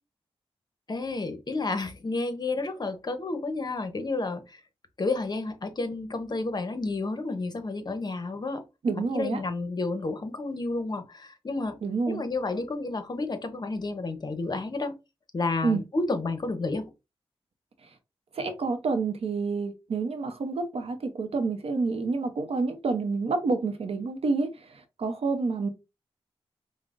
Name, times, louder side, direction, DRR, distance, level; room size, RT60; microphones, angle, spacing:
voice 1, 0.9-4.6 5.0-8.6 9.1-11.8 12.1-14.9 15.3-16.9, left 3 dB, 45° left, 0.7 m, -31 dB
voice 2, 8.8-9.4 11.8-12.2 15.6-15.8 18.3-25.7, right 4 dB, 75° right, 0.7 m, -28 dB
5.1 x 2.1 x 2.5 m
cardioid pair, 75°, 10 cm